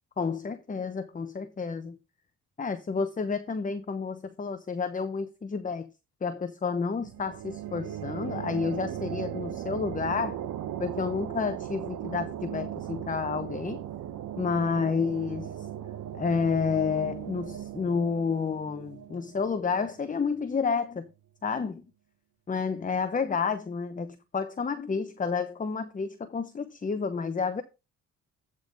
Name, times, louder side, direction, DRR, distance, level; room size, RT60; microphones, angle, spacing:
voice 1, 0.2-2.0 2.6-5.9 6.2-10.4 10.8-13.8 14.4-15.5 16.2-21.1 21.4-21.8 22.5-27.6, left 5 dB, 25° left, 0.9 m, -30 dB
sound 1, 7.0-20.4, right 11 dB, 75° right, 1.1 m, -38 dB
11.5 x 3.8 x 5.2 m
cardioid pair, 70°, 30 cm